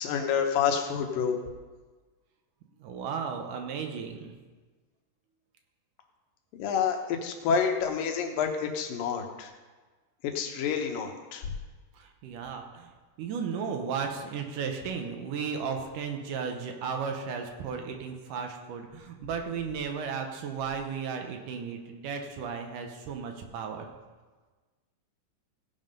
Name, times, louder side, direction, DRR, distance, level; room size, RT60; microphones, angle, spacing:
voice 1, 0.0-1.4 6.6-9.5 10.2-11.5, left 7 dB, 90° left, 4 dB, 2.8 m, -28 dB
voice 2, 2.8-4.3 11.9-12.9 13.2-23.9, right 6 dB, 75° right, 4 dB, 2.5 m, -35 dB
16.5 x 5.6 x 5.4 m, 1.3 s
omnidirectional pair, 3.8 m